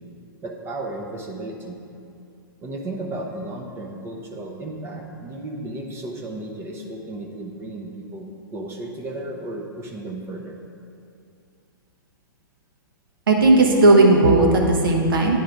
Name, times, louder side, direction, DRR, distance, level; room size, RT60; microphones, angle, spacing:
voice 1, 0.4-1.8 2.6-8.3 8.5-10.6, right 2 dB, 20° right, 0 dB, 0.7 m, -34 dB
voice 2, 13.3-15.4, right 2 dB, 70° right, 1 dB, 1.3 m, -15 dB
9.4 x 3.8 x 4.7 m, 2.6 s
figure-of-eight pair, 120°, 12 cm